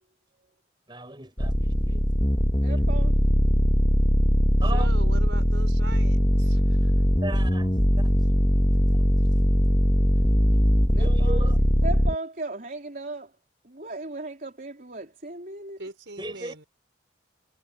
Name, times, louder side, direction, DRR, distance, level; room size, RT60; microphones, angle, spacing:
voice 1, 0.9-2.0 2.7-2.8 4.6-5.0 7.2-7.7 8.0-8.1 10.0-10.1 10.9-11.6 16.2-16.5, right 2 dB, 25° right, 5.7 m, -37 dB
sound 1, 1.4-12.1, equal, 20° left, 1.7 m, -21 dB
voice 2, 2.6-3.2 10.9-11.5 11.8-13.3 13.6-15.8, right 2 dB, 45° right, 3.9 m, -36 dB
voice 3, 4.7-6.9 15.8-16.6, right 2 dB, 65° right, 5.0 m, -41 dB
head